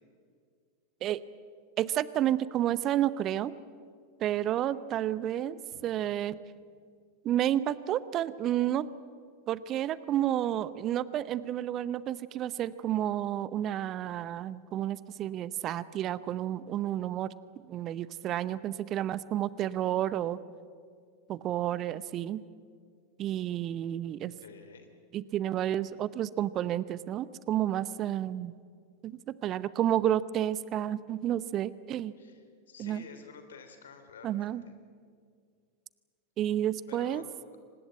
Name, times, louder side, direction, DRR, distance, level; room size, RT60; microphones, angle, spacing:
voice 1, 1.8-3.5 4.2-6.4 7.2-8.9 9.5-17.3 17.7-20.4 21.3-22.4 23.2-24.3 25.1-28.5 29.0-32.1 32.8-33.0 34.2-34.6 36.4-37.2, right 11 dB, 35° right, 18 dB, 0.8 m, -30 dB
voice 2, 24.4-24.9 32.2-34.7 36.9-37.2, left 6 dB, 65° left, 7 dB, 3.1 m, -50 dB
25.0 x 20.0 x 8.8 m, 2.1 s
figure-of-eight pair, 90°, 0 cm